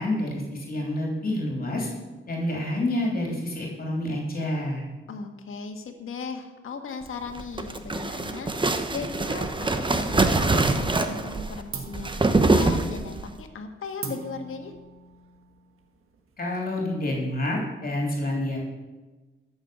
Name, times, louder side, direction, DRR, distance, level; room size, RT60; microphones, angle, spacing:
voice 1, 0.0-1.9 2.3-4.8 16.4-18.6, left 1 dB, 45° left, -1 dB, 3.2 m, -28 dB
voice 2, 5.1-14.7, left 5 dB, 75° left, 5 dB, 1.6 m, -37 dB
sound 1, 7.3-13.3, right 2 dB, 25° right, 1.0 m, -24 dB
sound 2, 11.7-16.9, right 5 dB, 85° right, 1.5 m, -42 dB
13.5 x 6.5 x 6.9 m, 1.2 s
cardioid pair, 95°, 21 cm